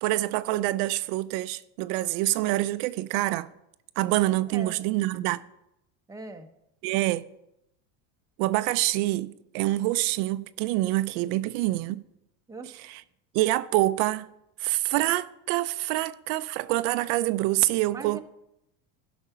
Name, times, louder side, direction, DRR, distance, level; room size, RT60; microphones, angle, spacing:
voice 1, 0.0-3.5 4.0-5.4 6.8-7.2 8.4-12.0 12.8-13.0 13.3-14.3 14.6-18.2, right 17 dB, 75° right, 0.6 m, -26 dB
voice 2, 6.1-6.5 12.5-12.8 17.9-18.2, right 3 dB, 10° right, 0.8 m, -40 dB
12.0 x 6.0 x 5.6 m
supercardioid pair, 120°, 44 cm